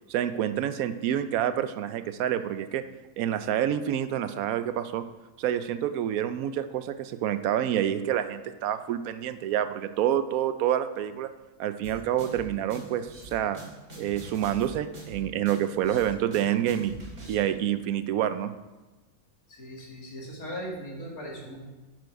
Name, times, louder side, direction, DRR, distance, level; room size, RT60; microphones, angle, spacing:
voice 1, 0.1-2.8 3.2-5.0 5.4-11.3 11.6-13.6 14.0-17.0 17.3-18.5, right 10 dB, 80° right, 11 dB, 1.0 m, -28 dB
sound 1, 11.8-17.3, right 2 dB, 55° right, 2.4 m, -44 dB
voice 2, 19.5-21.6, equal, 80° left, -3 dB, 2.7 m, -38 dB
10.0 x 6.2 x 4.6 m, 1.2 s
omnidirectional pair, 1.5 m